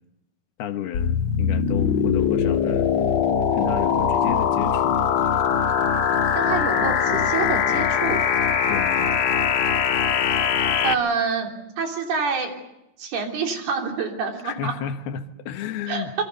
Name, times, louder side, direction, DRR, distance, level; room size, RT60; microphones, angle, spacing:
voice 1, 0.6-2.9 3.5-5.0 8.7-9.1 14.4-16.1, left 9 dB, 75° left, 8 dB, 3.2 m, -32 dB
sound 1, 0.9-10.9, left 7 dB, 55° left, 2.1 m, -21 dB
voice 2, 6.4-8.2 10.8-11.5 11.8-12.5 13.0-14.7 15.9-16.2, right 5 dB, 75° right, 2 dB, 5.2 m, -26 dB
27.0 x 24.5 x 6.8 m, 0.89 s
omnidirectional pair, 4.6 m